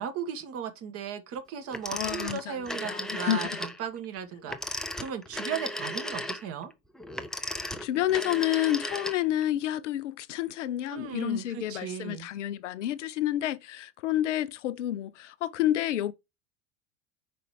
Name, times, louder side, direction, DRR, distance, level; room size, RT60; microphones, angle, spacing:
voice 1, 0.0-6.7 10.9-12.3, right 8 dB, 35° right, 1.3 m, -36 dB
Telephone, 1.7-3.8 4.4-9.5, left 1 dB, ahead, 0.4 m, -35 dB
voice 2, 1.9-2.5 2.8-3.5 7.6-16.1, left 13 dB, 60° left, 0.6 m, -29 dB
5.1 x 4.9 x 4.8 m
figure-of-eight pair, 80°, 41 cm